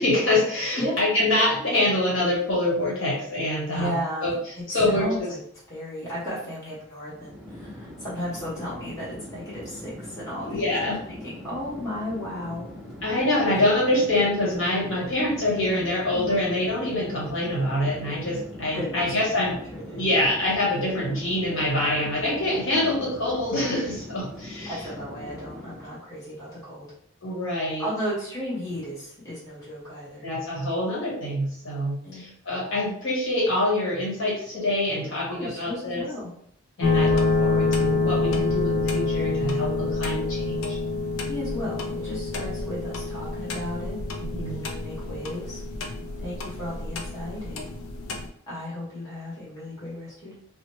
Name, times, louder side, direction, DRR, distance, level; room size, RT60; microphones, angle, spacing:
voice 1, 0.0-3.9 4.2-4.3 4.7-5.3 10.4-11.0 13.0-19.6 19.9-24.8 27.2-27.9 30.2-36.0 36.8-40.8 44.2-44.6, left 1 dB, 60° left, -6 dB, 1.1 m, -25 dB
voice 2, 3.7-5.4 5.7-12.7 16.1-16.3 18.7-20.0 24.7-26.9 27.8-30.3 32.0-32.2 35.2-36.3 41.3-44.0 44.4-45.6 46.2-47.8 48.5-50.4, equal, 15° left, -9 dB, 1.1 m, -34 dB
Chatter / Fixed-wing aircraft airplane, 7.1-26.0, left 1 dB, ahead, 0.5 m, -41 dB
sound 1, 36.8-48.3, left 3 dB, 85° left, 0.4 m, -27 dB
3.0 x 2.0 x 3.0 m, 0.66 s
head